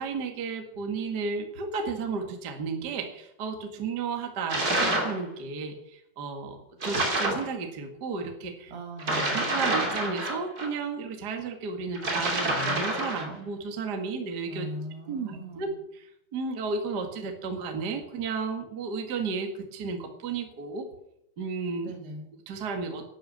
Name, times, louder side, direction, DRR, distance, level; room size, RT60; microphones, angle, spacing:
voice 1, 0.0-5.7 6.2-8.7 9.3-14.7 15.1-15.7 15.9-16.0 16.3-20.9 21.4-21.9 22.4-23.0, right 4 dB, 45° right, 4 dB, 1.3 m, -33 dB
sound 1, 4.5-5.2 6.8-7.5 9.0-10.7 11.9-13.3, right 1 dB, 25° right, 2.5 m, -27 dB
voice 2, 8.7-9.5 14.5-15.8 21.8-22.3, right 1 dB, 70° right, 2 dB, 4.5 m, -39 dB
12.0 x 9.4 x 8.6 m, 0.77 s
omnidirectional pair, 4.9 m